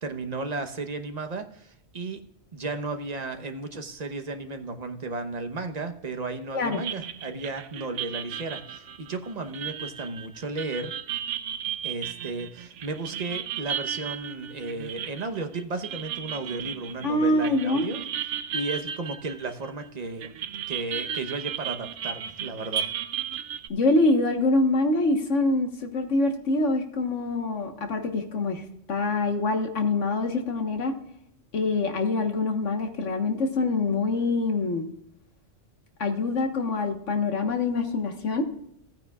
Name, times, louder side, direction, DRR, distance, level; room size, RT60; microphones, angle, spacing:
voice 1, 0.0-2.2 2.5-10.9 11.8-18.1 18.5-20.3 20.7-22.9, right 3 dB, 40° right, 6 dB, 1.0 m, -34 dB
sound 1, 6.7-19.9 20.2-23.7, right 9 dB, 80° right, 1.0 m, -35 dB
voice 2, 17.0-17.9 23.7-28.6 28.9-30.9 31.5-34.9 36.0-38.4, left 2 dB, 85° left, 5 dB, 1.6 m, -25 dB
15.5 x 9.2 x 2.3 m, 0.74 s
omnidirectional pair, 1.2 m